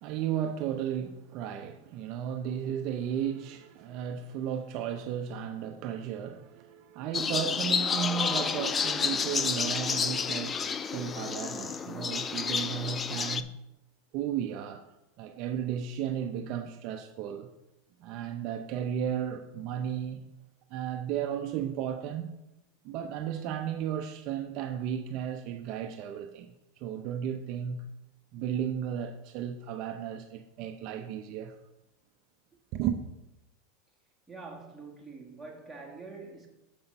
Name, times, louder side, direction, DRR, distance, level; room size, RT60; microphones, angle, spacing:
voice 1, 0.0-10.6 10.9-13.5 14.1-14.8 15.2-17.5 18.0-20.2 20.7-22.3 22.8-26.5 26.8-27.8 28.3-31.5 32.7-33.0, right 9 dB, 45° right, 0.6 m, -34 dB
sound 1, 7.1-13.4, left 6 dB, 20° left, 0.3 m, -30 dB
voice 2, 34.3-36.5, right 3 dB, 5° right, 1.7 m, -45 dB
7.0 x 5.6 x 5.3 m
supercardioid pair, 140°, 0 cm